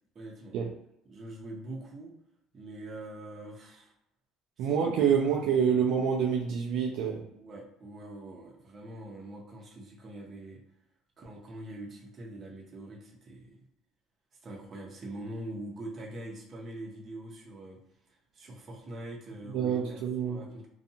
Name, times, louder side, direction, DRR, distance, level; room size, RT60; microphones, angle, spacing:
voice 1, 0.1-0.6 1.1-2.1 2.5-3.9 4.6-5.7 7.3-10.6 11.2-13.6 14.4-17.8 18.1-20.0 20.2-20.7, right 1 dB, 30° right, -2 dB, 0.8 m, -43 dB
voice 2, 4.6-7.2 19.5-20.5, right 7 dB, 65° right, 0 dB, 0.4 m, -27 dB
2.5 x 2.3 x 2.7 m, 0.78 s
cardioid pair, 130°, 0 cm